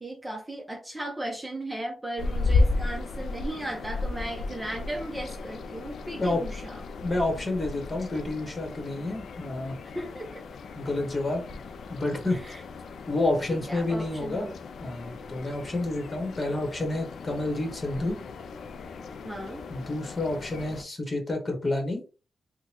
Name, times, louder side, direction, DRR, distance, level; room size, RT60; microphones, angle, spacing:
voice 1, 0.0-6.8 9.8-10.4 12.3-12.6 13.7-14.6 19.2-19.6, right 1 dB, 15° right, 1 dB, 0.7 m, -36 dB
sound 1, 2.2-20.8, left 3 dB, 80° left, 0.3 m, -34 dB
voice 2, 7.0-9.7 10.7-11.4 11.9-12.4 13.1-14.5 14.8-18.2 19.7-22.0, left 2 dB, 30° left, 2 dB, 1.2 m, -29 dB
3.8 x 2.2 x 2.9 m, 0.34 s
cardioid pair, 100°, 0 cm